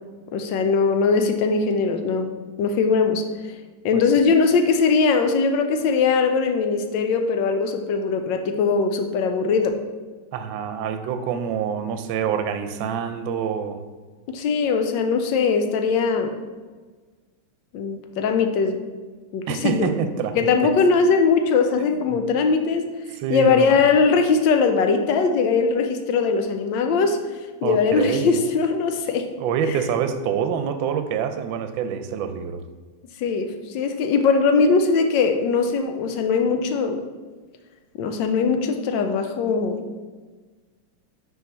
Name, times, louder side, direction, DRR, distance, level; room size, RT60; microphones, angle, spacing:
voice 1, 0.3-3.2 3.8-9.8 14.3-16.3 17.7-18.8 19.3-19.9 20.4-22.9 23.3-27.2 27.6-29.3 29.6-29.8 33.2-37.0 38.0-39.8, left 5 dB, 75° left, 6 dB, 1.2 m, -20 dB
voice 2, 10.3-13.8 19.5-20.7 22.1-22.2 23.2-23.8 27.6-28.4 29.4-32.6, right 7 dB, 80° right, 8 dB, 1.3 m, -26 dB
4.7 x 4.4 x 5.3 m, 1.4 s
omnidirectional pair, 2.2 m